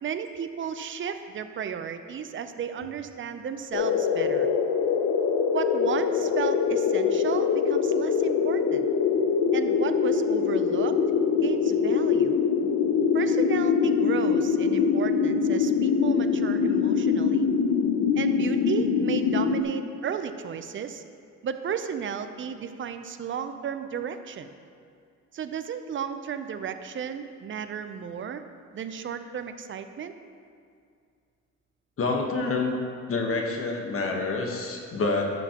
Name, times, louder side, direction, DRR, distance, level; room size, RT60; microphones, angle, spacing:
voice 1, 0.0-4.5 5.5-8.9 9.5-11.0 11.4-12.4 13.1-17.5 18.2-21.0 21.4-24.5 25.3-28.4 28.7-30.1, right 7 dB, 40° right, 9 dB, 0.6 m, -33 dB
sound 1, 3.7-19.6, left 6 dB, 80° left, 0.7 m, -23 dB
voice 2, 32.0-32.8 33.1-35.3, left 3 dB, 45° left, 1 dB, 1.2 m, -27 dB
11.5 x 7.2 x 2.9 m, 2.3 s
cardioid pair, 90°, 30 cm